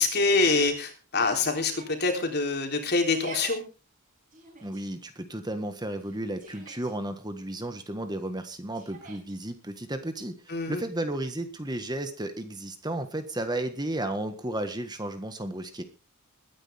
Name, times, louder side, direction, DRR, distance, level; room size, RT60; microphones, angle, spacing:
voice 1, 0.0-3.6 10.5-10.8, left 3 dB, 50° left, 4 dB, 3.5 m, -25 dB
Yell, 1.6-2.1 3.0-3.6 4.3-4.8 6.0-6.9 8.7-9.3, right 3 dB, 40° right, 6.6 m, -46 dB
voice 2, 4.6-15.8, right 1 dB, 20° right, 8 dB, 1.5 m, -33 dB
21.5 x 10.0 x 3.6 m, 0.33 s
head